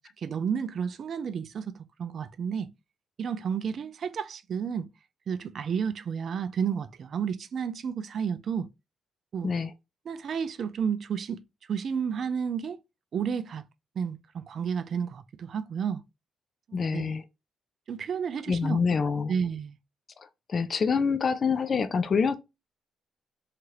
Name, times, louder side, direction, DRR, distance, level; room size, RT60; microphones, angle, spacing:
voice 1, 0.2-2.7 3.2-4.9 5.3-8.7 9.3-9.5 10.1-11.4 11.7-12.8 13.1-13.6 14.0-16.0 16.7-17.1 17.9-19.8, right 7 dB, 55° right, 0.3 m, -31 dB
voice 2, 16.7-17.2 18.5-19.3 20.2-22.3, left 5 dB, 45° left, 0.4 m, -26 dB
2.8 x 2.4 x 3.1 m
cardioid pair, 90°, 0 cm